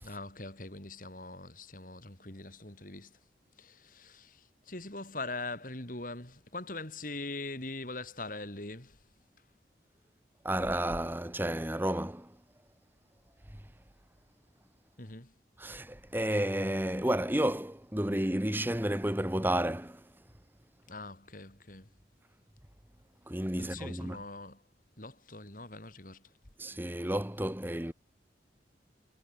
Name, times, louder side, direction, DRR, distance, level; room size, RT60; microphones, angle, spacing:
voice 1, 0.0-3.2 3.6-9.0 15.0-15.3 20.9-21.9 23.6-24.6 25.0-26.3, left 2 dB, 45° left, 3.7 m, -42 dB
voice 2, 10.4-12.3 15.6-20.0 23.3-24.2 26.6-27.9, right 1 dB, 10° right, 1.5 m, -31 dB
head